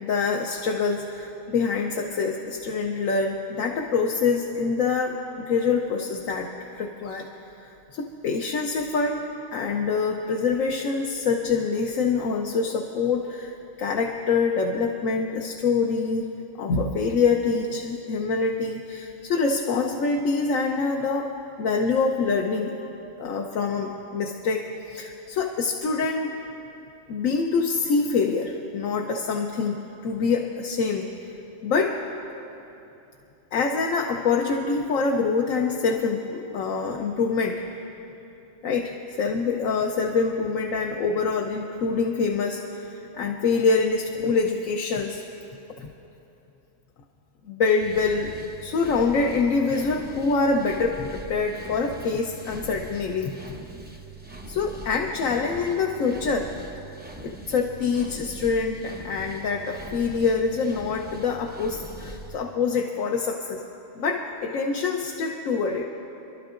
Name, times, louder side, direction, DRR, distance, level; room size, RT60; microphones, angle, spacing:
voice 1, 0.0-7.3 7.9-9.2 9.5-16.3 16.6-21.3 21.6-22.7 23.2-24.6 24.9-26.3 27.1-31.1 31.6-32.0 33.5-37.6 38.6-45.2 45.8-45.9 47.5-48.3 48.6-53.3 54.5-56.5 57.2-63.6 64.0-65.8, left 4 dB, 85° left, 1 dB, 1.2 m, -25 dB
sound 1, 47.8-62.4, right 2 dB, 15° right, 0.4 m, -42 dB
28.0 x 12.0 x 2.5 m, 2.9 s
omnidirectional pair, 1.3 m